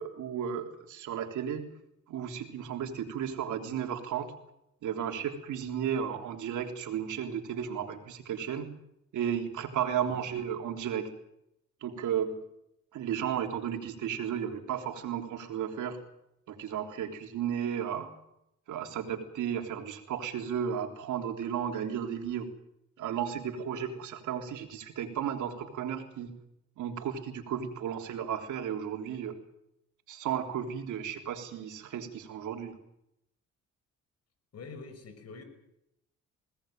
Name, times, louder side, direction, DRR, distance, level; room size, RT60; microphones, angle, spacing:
voice 1, 0.0-1.6 2.1-4.3 4.8-8.7 9.1-11.1 11.8-12.4 12.9-16.0 16.5-18.1 18.7-22.5 23.0-26.3 26.8-29.4 30.1-32.7, right 8 dB, 80° right, 4 dB, 3.6 m, -34 dB
voice 2, 34.5-35.4, left 4 dB, 55° left, 9 dB, 5.5 m, -45 dB
21.5 x 18.5 x 9.1 m, 0.82 s
cardioid pair, 90°, 30 cm